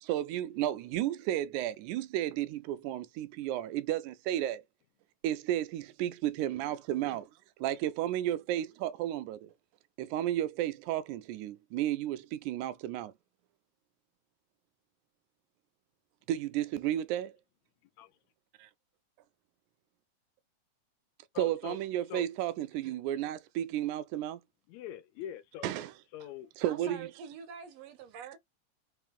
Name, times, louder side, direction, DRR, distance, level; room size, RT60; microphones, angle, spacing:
voice 1, 0.0-4.6 5.2-7.3 7.6-9.5 10.0-13.1 16.3-17.3 21.4-24.4 25.6-25.9 26.6-27.1, right 12 dB, 90° right, 2.0 m, -33 dB
voice 2, 21.3-21.8 22.1-22.2 24.7-25.7 26.1-26.5 26.8-27.0, left 11 dB, 80° left, 1.8 m, -43 dB
voice 3, 26.6-28.4, right 7 dB, 70° right, 1.8 m, -45 dB
5.5 x 2.6 x 3.6 m
omnidirectional pair, 3.4 m